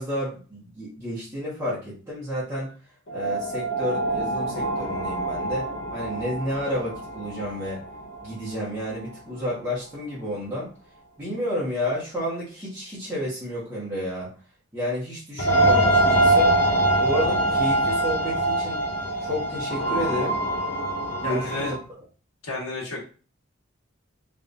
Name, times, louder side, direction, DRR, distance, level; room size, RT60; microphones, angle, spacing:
voice 1, 0.0-2.7 3.1-7.8 8.2-10.7 11.2-14.3 14.7-16.5 17.0-18.8 19.2-20.4 21.2-21.7, equal, 10° right, -11 dB, 1.4 m, -31 dB
sound 1, 3.1-8.7 9.0-9.1 15.4-21.8, right 1 dB, 55° left, 0.9 m, -24 dB
voice 2, 21.2-21.7 22.4-23.0, left 2 dB, 90° left, -3 dB, 1.5 m, -31 dB
3.5 x 3.4 x 2.7 m, 0.37 s
head